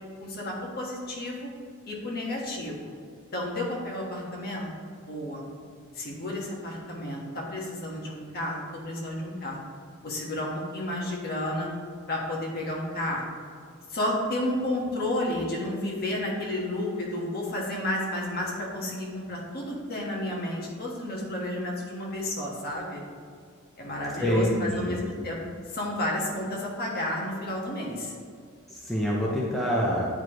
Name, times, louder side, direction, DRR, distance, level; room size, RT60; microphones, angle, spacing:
voice 1, 0.2-1.5 1.9-2.9 3.3-4.7 5.0-5.4 5.9-9.6 10.0-11.7 12.1-13.4 13.9-23.0 23.8-25.4 25.7-28.1, left 1 dB, 45° left, -2 dB, 1.4 m, -31 dB
voice 2, 24.2-25.0 28.7-30.1, equal, ahead, -5 dB, 0.7 m, -26 dB
9.5 x 4.8 x 3.0 m, 2.1 s
head